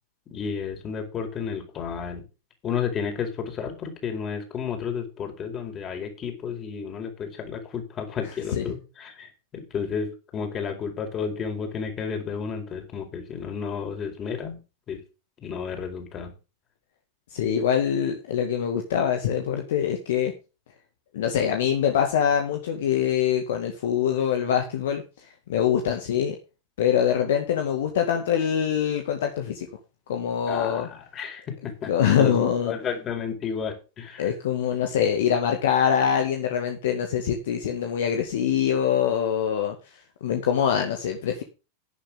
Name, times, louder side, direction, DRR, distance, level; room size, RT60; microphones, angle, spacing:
voice 1, 0.3-2.2 2.6-14.6 14.9-15.0 15.4-16.3 30.5-32.3 32.6-34.3, left 6 dB, 30° left, 4 dB, 4.9 m, -32 dB
voice 2, 17.3-20.3 21.1-25.0 25.5-26.4 26.8-29.7 30.1-30.9 31.9-32.7 34.2-39.8 40.2-41.4, left 8 dB, 55° left, 4 dB, 2.0 m, -24 dB
12.0 x 10.5 x 3.7 m, 0.30 s
figure-of-eight pair, 90°, 0 cm